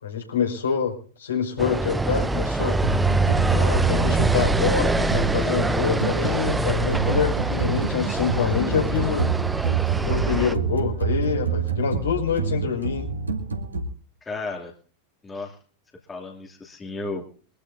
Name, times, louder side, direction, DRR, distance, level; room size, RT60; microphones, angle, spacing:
voice 1, 0.0-2.8 3.5-9.3 9.9-13.1, left 7 dB, 70° left, 1 dB, 5.8 m, -26 dB
sound 1, 1.6-10.5, right 2 dB, 10° right, 0.8 m, -24 dB
sound 2, 2.8-13.8, right 5 dB, 80° right, 3.4 m, -27 dB
voice 2, 14.2-14.7 15.2-15.6 16.1-17.2, left 3 dB, 15° left, 0 dB, 2.7 m, -33 dB
25.0 x 14.0 x 2.7 m, 0.43 s
figure-of-eight pair, 90°, 0 cm